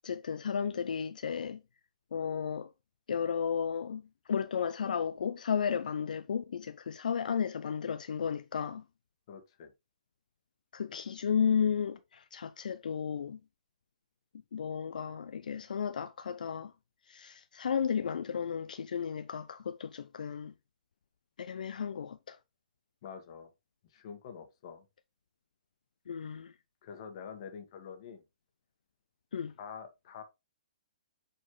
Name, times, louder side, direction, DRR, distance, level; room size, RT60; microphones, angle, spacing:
voice 1, 0.0-1.6 2.1-2.7 3.1-4.0 4.3-8.8 10.7-13.4 14.5-16.7 17.1-20.5 21.4-22.4 26.1-26.5 29.3-29.5, left 7 dB, 75° left, 0.5 m, -33 dB
voice 2, 9.3-9.7 23.0-23.5 23.9-24.8 26.8-28.2 29.6-30.2, left 7 dB, 45° left, 1.6 m, -46 dB
7.7 x 4.3 x 3.2 m
hypercardioid pair, 155°, 4 cm